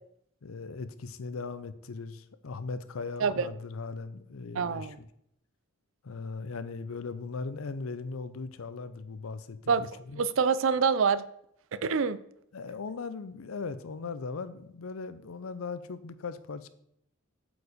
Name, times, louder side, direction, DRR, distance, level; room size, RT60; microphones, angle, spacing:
voice 1, 0.4-4.9 6.0-10.2 12.5-16.7, left 4 dB, 85° left, 14 dB, 0.6 m, -38 dB
voice 2, 4.6-5.0 9.7-9.8 10.2-11.3 11.7-12.2, right 5 dB, 70° right, 15 dB, 0.4 m, -26 dB
8.1 x 4.9 x 5.0 m, 0.74 s
head